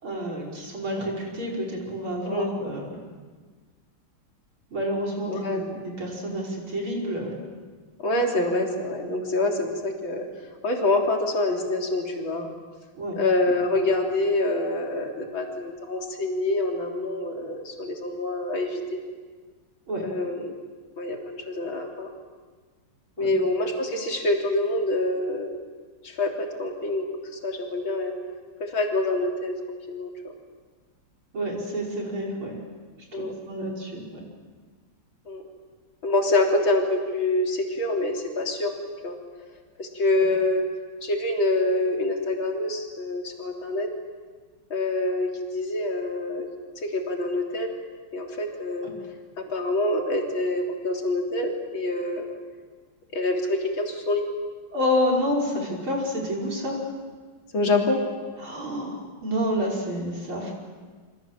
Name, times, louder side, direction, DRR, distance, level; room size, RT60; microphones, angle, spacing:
voice 1, 0.0-2.9 4.7-7.3 12.9-13.2 19.9-20.1 23.2-23.3 31.3-32.6 33.2-34.2 48.8-48.9 54.7-56.9 58.4-60.5, equal, 70° right, -2 dB, 6.4 m, -29 dB
voice 2, 5.3-5.6 8.0-10.2 10.6-12.5 13.1-18.8 20.0-20.5 21.0-22.1 23.2-25.5 26.0-27.0 27.4-28.1 28.6-30.3 33.1-33.3 35.3-35.4 36.0-38.7 39.0-39.2 39.8-40.7 41.0-43.9 44.7-46.5 46.8-47.7 48.1-48.9 49.4-52.3 53.1-54.2 57.5-58.0, left 2 dB, 65° left, 1 dB, 4.2 m, -26 dB
28.5 x 26.0 x 7.6 m, 1.5 s
omnidirectional pair, 2.4 m